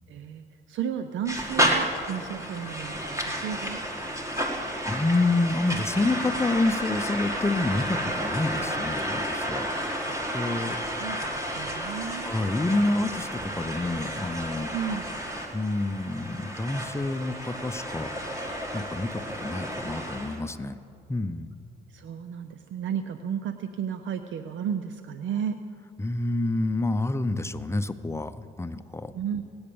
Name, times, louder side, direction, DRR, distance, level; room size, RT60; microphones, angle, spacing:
voice 1, 0.1-3.8 10.0-10.2 10.7-12.4 14.7-15.0 21.9-25.6 29.1-29.4, right 8 dB, 75° right, 9 dB, 0.6 m, -33 dB
sound 1, 1.3-20.4, equal, 15° right, 1.8 m, -31 dB
voice 2, 4.9-9.7 10.3-10.8 12.2-14.7 15.5-18.5 18.7-20.8 21.1-21.5 26.0-29.1, left 2 dB, 15° left, 11 dB, 0.6 m, -28 dB
18.5 x 8.8 x 6.9 m, 2.5 s
cardioid pair, 90°, 20 cm